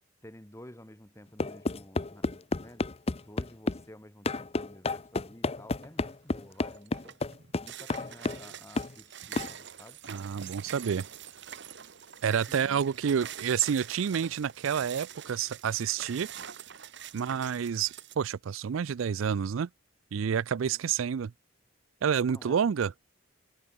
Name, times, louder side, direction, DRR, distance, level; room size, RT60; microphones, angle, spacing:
voice 1, 0.2-7.2 7.6-10.0 12.5-12.9 20.6-20.9 22.3-22.7, left 1 dB, 15° left, 3.7 m, -52 dB
sound 1, 1.4-3.8 4.2-8.5 8.8-8.9 9.4-9.5, left 3 dB, 30° left, 0.7 m, -31 dB
sound 2, 5.7-6.1 6.5-18.2, right 9 dB, 60° right, 1.5 m, -45 dB
voice 2, 10.1-11.0 12.2-16.3 17.1-19.7 20.1-21.3 22.0-22.9, right 7 dB, 75° right, 0.4 m, -29 dB
head